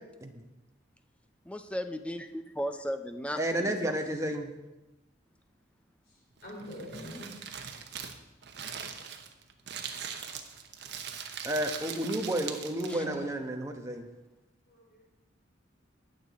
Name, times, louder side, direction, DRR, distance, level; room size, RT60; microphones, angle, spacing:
voice 1, 1.5-4.0 12.9-13.0, equal, 5° left, 8 dB, 0.5 m, -36 dB
voice 2, 3.4-4.5 11.4-14.1, right 1 dB, 15° right, 3 dB, 1.0 m, -31 dB
voice 3, 6.1-7.3 12.8-13.3 14.7-15.0, equal, 50° left, -4 dB, 4.7 m, -44 dB
Crumpling crinkling, 6.4-13.1, right 7 dB, 55° right, 1.0 m, -41 dB
18.5 x 6.8 x 4.2 m, 1.0 s
head